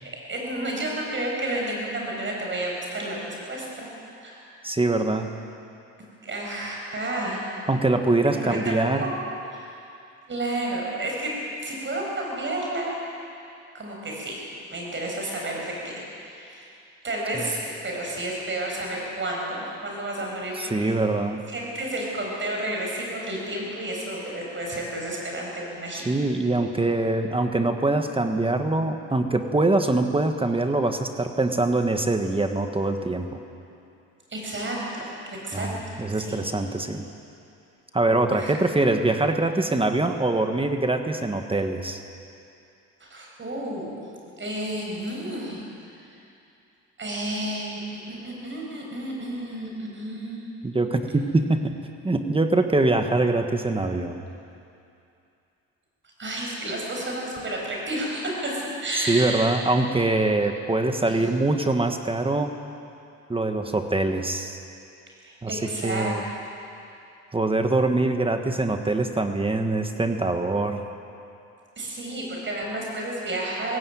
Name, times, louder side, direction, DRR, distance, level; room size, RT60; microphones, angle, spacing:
voice 1, 0.0-3.9 4.2-4.5 6.2-7.5 8.2-9.1 9.5-9.8 10.3-11.3 11.6-13.0 13.7-14.4 14.7-16.7 17.0-21.0 21.5-26.2 34.3-35.1 35.4-36.4 38.3-38.5 43.0-44.0 44.4-45.9 47.0-47.8 48.1-50.4 56.2-59.5 61.0-61.2 65.2-66.1 66.5-66.7 71.8-73.8, right 1 dB, 40° right, -1 dB, 7.6 m, -31 dB
voice 2, 4.6-5.3 7.7-9.0 17.3-17.5 20.6-21.4 25.9-33.3 35.5-37.0 37.9-42.0 50.6-51.8 52.0-54.2 59.1-62.5 63.3-64.6 65.4-66.2 67.3-70.8, right 2 dB, 20° right, 6 dB, 1.4 m, -23 dB
20.0 x 17.0 x 9.3 m, 2.6 s
cardioid pair, 90°, 30 cm